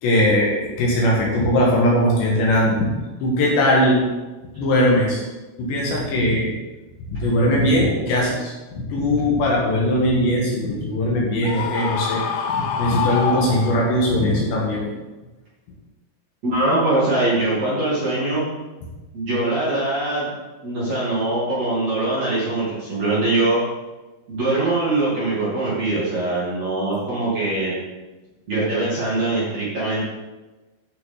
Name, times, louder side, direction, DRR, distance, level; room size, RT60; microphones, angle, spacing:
voice 1, 0.0-2.9 3.2-4.0 4.6-5.2 5.6-6.5 7.1-12.2 12.5-14.8, left 1 dB, 65° left, -3 dB, 3.4 m, -20 dB
Screaming, 11.4-14.1, left 6 dB, 80° left, 3.3 m, -26 dB
voice 2, 16.4-18.4 19.1-20.3 20.6-23.6 24.3-27.7 28.5-30.0, right 2 dB, 40° right, -9 dB, 3.1 m, -22 dB
12.5 x 5.9 x 3.9 m, 1.1 s
omnidirectional pair, 5.9 m